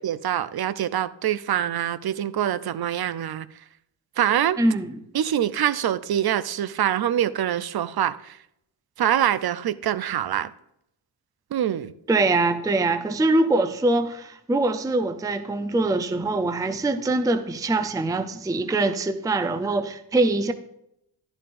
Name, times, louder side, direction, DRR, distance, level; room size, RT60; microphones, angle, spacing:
voice 1, 0.0-3.5 4.2-4.6 5.1-8.4 9.0-10.5 11.5-11.9, right 10 dB, 55° right, 0.6 m, -24 dB
voice 2, 4.6-5.0 12.1-20.5, right 2 dB, 10° right, 0.5 m, -23 dB
12.0 x 11.0 x 2.5 m
wide cardioid pair, 150°, 46 cm